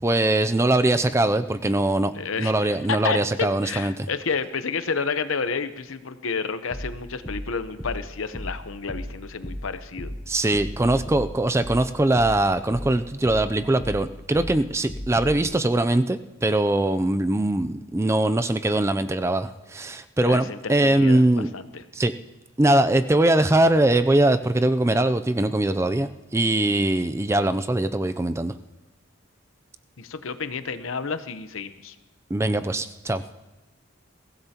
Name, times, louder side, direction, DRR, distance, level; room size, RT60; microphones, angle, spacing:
voice 1, 0.0-2.1 2.4-3.9 10.3-21.5 21.9-22.1 22.6-28.5 32.3-33.2, right 1 dB, 15° right, 10 dB, 0.4 m, -22 dB
voice 2, 2.1-10.1 20.2-21.8 30.0-31.9, left 5 dB, 85° left, 11 dB, 0.8 m, -30 dB
sound 1, 6.7-15.4, equal, 15° left, 3.5 m, -36 dB
22.5 x 16.0 x 2.9 m, 1.1 s
head